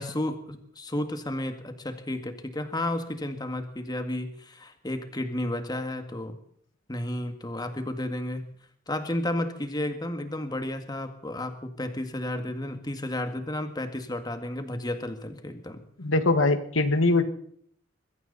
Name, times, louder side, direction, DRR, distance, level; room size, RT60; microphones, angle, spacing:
voice 1, 0.0-6.3 6.9-8.5 8.9-15.8, left 1 dB, 20° left, 7 dB, 2.0 m, -32 dB
voice 2, 16.0-17.2, left 2 dB, 85° left, 10 dB, 1.8 m, -22 dB
22.0 x 15.5 x 4.2 m, 0.63 s
head